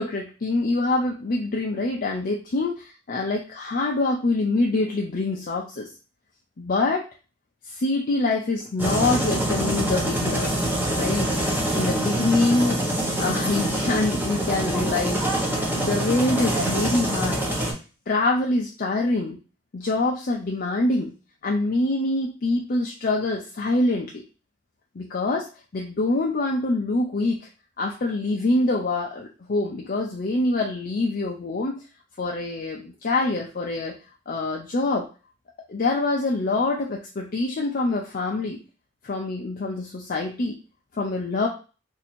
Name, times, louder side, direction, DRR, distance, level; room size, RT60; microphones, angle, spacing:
voice 1, 0.0-2.7 3.1-5.9 6.6-7.1 7.7-10.6 10.9-11.3 11.7-12.8 13.2-17.4 18.1-19.4 19.7-21.1 21.4-24.2 25.0-27.5 27.8-31.8 32.2-33.9 34.3-35.1 35.7-38.6 39.0-40.6 40.9-41.5, left 2 dB, 50° left, 0 dB, 0.5 m, -25 dB
sound 1, 8.8-17.7, right 1 dB, 10° right, 0.9 m, -25 dB
2.7 x 2.6 x 4.2 m, 0.34 s
head